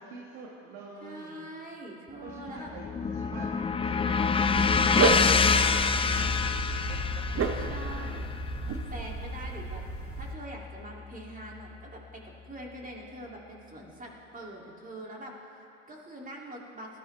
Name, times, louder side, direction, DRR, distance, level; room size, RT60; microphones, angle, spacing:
voice 1, 0.0-1.4 2.2-8.2, right 4 dB, 70° right, -2 dB, 1.7 m, -46 dB
voice 2, 1.0-2.7 7.6-8.3 8.7-9.8 10.2-17.0, right 1 dB, 20° right, -2 dB, 2.8 m, -44 dB
sound 1, 2.3-10.6, left 5 dB, 15° left, 0.5 m, -27 dB
Dog, 4.4-10.3, right 4 dB, 35° right, 1.3 m, -32 dB
19.0 x 13.0 x 3.4 m, 2.7 s
hypercardioid pair, 75°, 37 cm